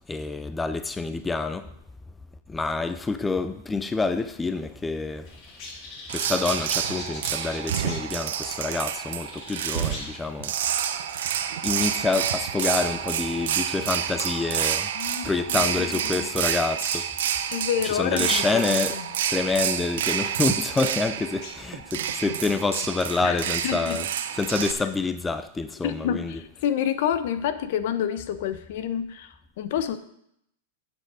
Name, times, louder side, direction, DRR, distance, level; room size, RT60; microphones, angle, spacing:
voice 1, 0.1-1.7 2.5-5.3 6.1-10.6 11.6-14.9 15.2-17.1 17.8-19.0 19.3-24.1 24.3-26.4, left 3 dB, 10° left, 0.5 m, -27 dB
sound 1, 3.9-22.1, left 3 dB, 45° left, 2.6 m, -47 dB
sound 2, 6.1-24.7, right 9 dB, 75° right, 0.7 m, -28 dB
voice 2, 14.9-16.3 17.5-19.0 23.2-24.0 25.8-30.0, left 9 dB, 65° left, 0.9 m, -29 dB
8.8 x 7.7 x 4.9 m
hypercardioid pair, 125°, 0 cm